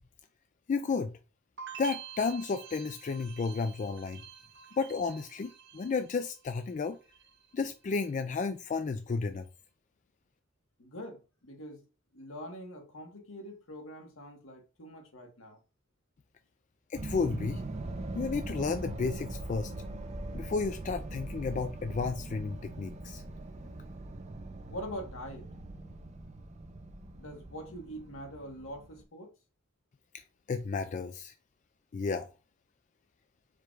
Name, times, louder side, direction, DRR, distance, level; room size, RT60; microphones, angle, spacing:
voice 1, 0.7-1.1 1.8-4.2 4.8-7.0 7.5-9.4 16.9-17.6 18.1-19.7 20.3-23.2 30.5-31.3 31.9-32.3, left 4 dB, 35° left, 0.3 m, -32 dB
sound 1, 1.6-6.6 6.9-7.5, right 8 dB, 65° right, 0.9 m, -48 dB
voice 2, 10.8-11.8 12.1-15.6 24.6-25.5 27.2-29.3, equal, 80° left, 1.4 m, -44 dB
sound 2, 16.9-29.0, right 2 dB, 35° right, 0.5 m, -41 dB
4.8 x 2.4 x 4.5 m
head